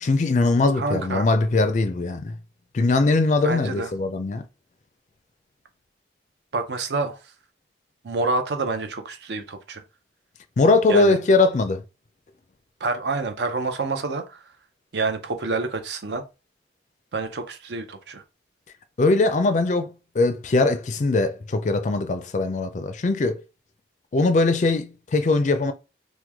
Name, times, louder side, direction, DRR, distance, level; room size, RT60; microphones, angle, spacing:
voice 1, 0.0-2.3 2.7-4.4 10.6-11.8 19.0-23.4 24.1-25.7, left 3 dB, 40° left, 0.4 m, -21 dB
voice 2, 0.8-1.3 3.4-3.9 6.5-7.2 8.0-9.8 10.9-11.2 12.8-14.4 14.9-16.2 17.1-18.2, right 3 dB, 75° right, 0.6 m, -27 dB
3.0 x 2.2 x 3.4 m
head